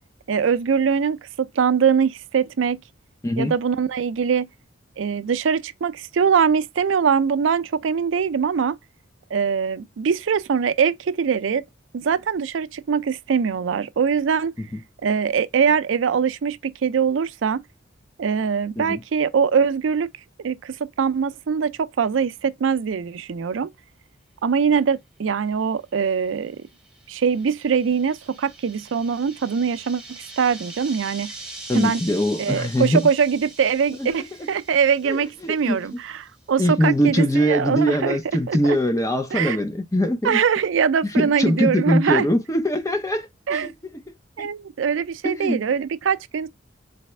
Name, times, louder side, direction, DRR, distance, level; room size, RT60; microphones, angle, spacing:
voice 1, 0.3-2.8 3.4-4.5 5.0-8.8 9.3-11.6 11.9-14.5 15.0-17.6 18.2-20.1 20.4-23.7 24.4-26.6 27.1-31.3 31.7-32.0 32.4-38.2 38.5-38.8 39.3-39.6 40.2-42.3 43.5-43.7 44.4-46.5, right 6 dB, 90° right, 0.4 m, -22 dB
sound 1, 26.2-36.0, right 2 dB, 5° right, 1.1 m, -42 dB
voice 2, 31.7-33.0 34.0-34.2 35.0-35.8 36.6-40.4 41.0-43.7 44.4-44.5 45.2-45.6, equal, 15° left, 0.6 m, -22 dB
4.1 x 3.3 x 3.2 m
head